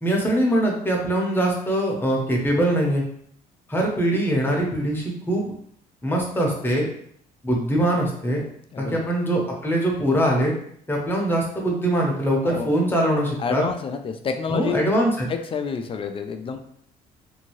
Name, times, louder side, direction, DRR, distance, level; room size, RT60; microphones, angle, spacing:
voice 1, 0.0-3.0 3.7-5.5 6.0-6.9 7.4-8.4 8.8-10.5 10.9-13.6 14.5-15.3, right 1 dB, 10° left, -1 dB, 0.8 m, -22 dB
voice 2, 8.7-9.1 12.4-12.7 13.4-14.9 15.3-16.6, left 5 dB, 35° left, 7 dB, 0.3 m, -28 dB
2.6 x 2.6 x 3.0 m, 0.65 s
cardioid pair, 110°, 17 cm